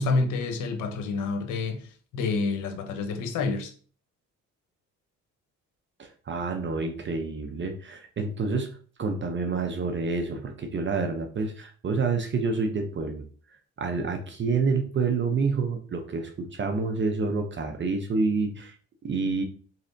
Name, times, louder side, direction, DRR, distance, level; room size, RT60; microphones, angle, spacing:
voice 1, 0.0-1.9 2.1-3.7, left 3 dB, 90° left, 0.8 m, -28 dB
voice 2, 6.0-8.7 9.0-13.2 13.8-18.8 19.0-19.4, right 4 dB, 40° right, 0.6 m, -28 dB
4.1 x 3.3 x 2.6 m
cardioid pair, 90°, 30 cm